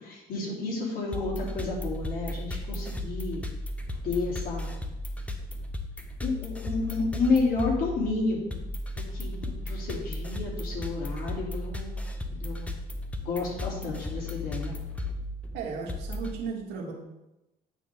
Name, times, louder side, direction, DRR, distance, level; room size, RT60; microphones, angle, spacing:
voice 1, 0.0-3.4 4.0-4.7 6.2-8.7 8.9-11.9 12.4-12.7 13.2-14.8, left 3 dB, 60° left, -4 dB, 3.4 m, -31 dB
sound 1, 1.1-16.3, left 1 dB, 10° left, 0.9 m, -35 dB
voice 2, 15.5-16.9, right 5 dB, 90° right, 1 dB, 1.8 m, -35 dB
9.0 x 3.8 x 6.9 m, 0.95 s
cardioid pair, 110°, 17 cm